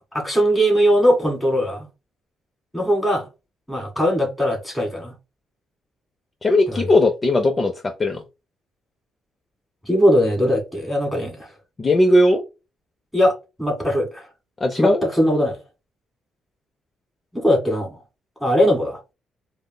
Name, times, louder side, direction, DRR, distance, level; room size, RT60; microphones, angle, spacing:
voice 1, 0.0-1.9 2.7-3.3 3.7-5.1 6.7-6.9 9.8-11.5 13.1-13.3 13.6-14.3 14.8-15.6 17.3-18.0 18.4-19.0, equal, 5° left, 1.9 m, -20 dB
voice 2, 6.4-8.2 11.8-12.4 14.6-15.0, left 1 dB, 30° left, 0.5 m, -18 dB
4.7 x 2.1 x 2.2 m
cardioid pair, 90°, 0 cm